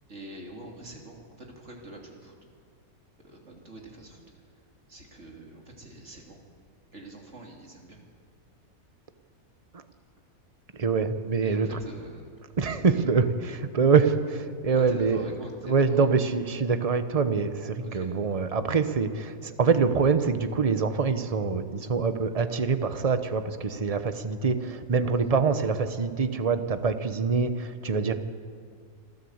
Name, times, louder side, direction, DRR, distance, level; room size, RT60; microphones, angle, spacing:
voice 1, 0.1-2.5 3.2-4.2 4.5-6.4 6.9-8.0 11.4-12.3 14.7-16.2 17.8-18.2, right 1 dB, 50° right, 0 dB, 3.3 m, -45 dB
voice 2, 10.8-11.8 12.6-15.2 15.6-28.1, right 5 dB, 30° right, 10 dB, 0.9 m, -25 dB
26.0 x 13.5 x 8.0 m, 2.1 s
omnidirectional pair, 1.6 m